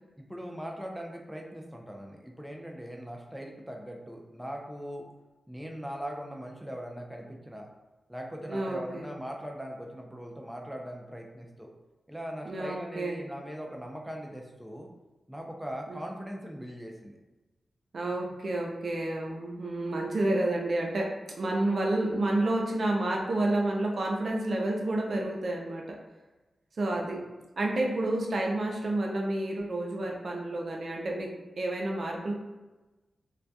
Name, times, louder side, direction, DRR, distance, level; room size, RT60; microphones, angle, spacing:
voice 1, 0.2-5.0 5.5-7.7 8.1-11.7 12.1-14.9 15.3-17.2, equal, 5° right, 0 dB, 0.4 m, -40 dB
voice 2, 8.5-9.1 12.5-13.2 15.9-16.0 17.9-21.1 21.4-26.0 26.8-27.2 27.6-32.3, right 1 dB, 65° right, 0 dB, 0.4 m, -30 dB
2.2 x 2.2 x 2.6 m, 1.1 s
cardioid pair, 60°, 0 cm